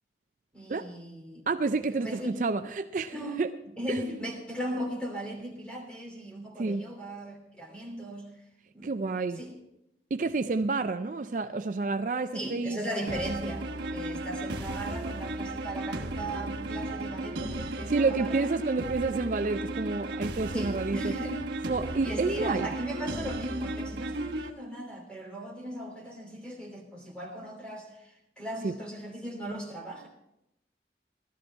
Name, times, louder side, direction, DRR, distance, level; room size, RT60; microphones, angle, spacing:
voice 1, 0.5-1.5 2.0-2.4 3.1-3.4 3.8-8.3 8.7-9.5 12.3-18.5 20.5-21.4 22.0-30.1, right 1 dB, 5° left, 0 dB, 3.0 m, -37 dB
voice 2, 1.5-3.5 3.9-4.0 6.6-6.9 8.8-9.4 10.1-12.8 17.7-21.1 21.7-22.7 28.6-28.8, right 3 dB, 45° right, 9 dB, 0.4 m, -29 dB
sound 1, 13.1-24.5, right 2 dB, 85° right, 1.2 m, -35 dB
16.0 x 13.0 x 4.4 m, 0.86 s
head